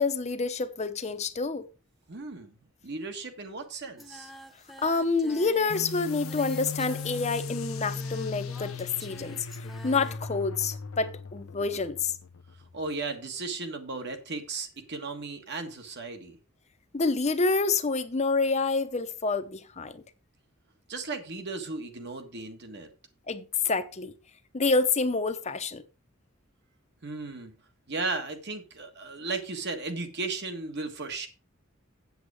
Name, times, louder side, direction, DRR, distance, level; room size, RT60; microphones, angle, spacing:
voice 1, 0.0-1.7 4.8-9.4 9.8-12.1 16.9-20.0 23.3-24.1 24.5-25.8, left 4 dB, 35° left, 0.8 m, -28 dB
voice 2, 2.1-2.5 2.8-4.3 12.7-16.4 20.9-22.9 27.0-27.5 27.9-31.3, right 3 dB, 55° right, 1.6 m, -35 dB
Singing, 4.0-10.2, equal, ahead, 1.0 m, -48 dB
sound 1, 5.7-12.9, left 4 dB, 85° left, 0.7 m, -38 dB
8.1 x 8.0 x 4.9 m
head